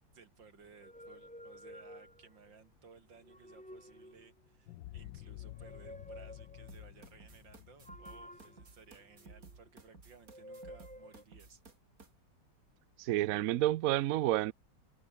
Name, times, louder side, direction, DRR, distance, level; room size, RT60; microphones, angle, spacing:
voice 1, 0.1-11.6, right 5 dB, 85° right, 3.5 m, -59 dB
sound 1, 0.7-2.5 3.1-4.5 5.4-6.8 7.9-9.7 10.3-11.2, equal, 5° left, 4.2 m, -52 dB
sound 2, 4.7-9.4, left 15 dB, 90° left, 1.4 m, -51 dB
sound 3, 6.7-12.1, right 4 dB, 50° right, 3.3 m, -56 dB
voice 2, 13.0-14.5, right 15 dB, 70° right, 0.8 m, -29 dB
omnidirectional pair, 2.0 m